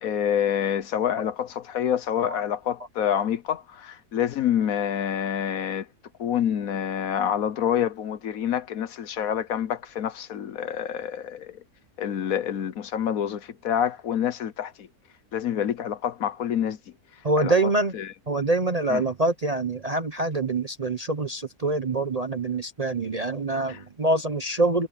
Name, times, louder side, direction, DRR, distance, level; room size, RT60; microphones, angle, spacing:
voice 1, 0.0-5.9 6.2-11.6 12.0-14.9 15.3-16.8 17.4-17.5 17.9-18.1 18.9-19.0 23.7-23.8, left 9 dB, 65° left, 1.2 m, -27 dB
voice 2, 17.2-18.0 18.3-24.9, right 2 dB, 35° right, 0.7 m, -25 dB
omnidirectional pair, 1.7 m